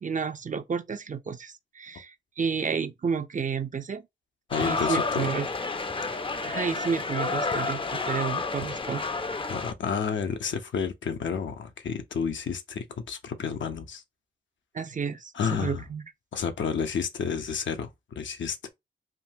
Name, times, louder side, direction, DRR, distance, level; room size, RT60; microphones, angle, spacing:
voice 1, 0.0-4.1 4.6-5.5 6.4-9.1 14.7-16.0, right 6 dB, 40° right, 0.5 m, -31 dB
voice 2, 4.5-5.3 9.5-14.0 15.3-15.8 16.3-17.9 18.2-18.7, left 6 dB, 70° left, 0.7 m, -30 dB
sound 1, 4.5-9.7, left 4 dB, 25° left, 0.5 m, -30 dB
3.6 x 2.2 x 2.6 m
cardioid pair, 50°, 20 cm